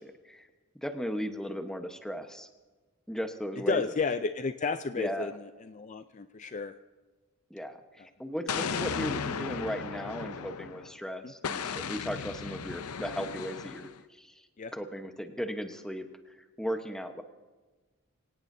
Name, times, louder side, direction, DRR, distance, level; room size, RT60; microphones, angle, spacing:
voice 1, 0.7-2.5 3.1-3.8 4.9-5.3 7.5-17.2, equal, 5° left, 6 dB, 1.0 m, -36 dB
voice 2, 3.7-6.7 11.2-11.3 14.6-14.7, left 4 dB, 35° left, 10 dB, 0.4 m, -32 dB
Explosion, 8.5-10.9 11.4-14.0, left 6 dB, 85° left, 0.6 m, -35 dB
24.5 x 17.5 x 2.7 m, 1.3 s
head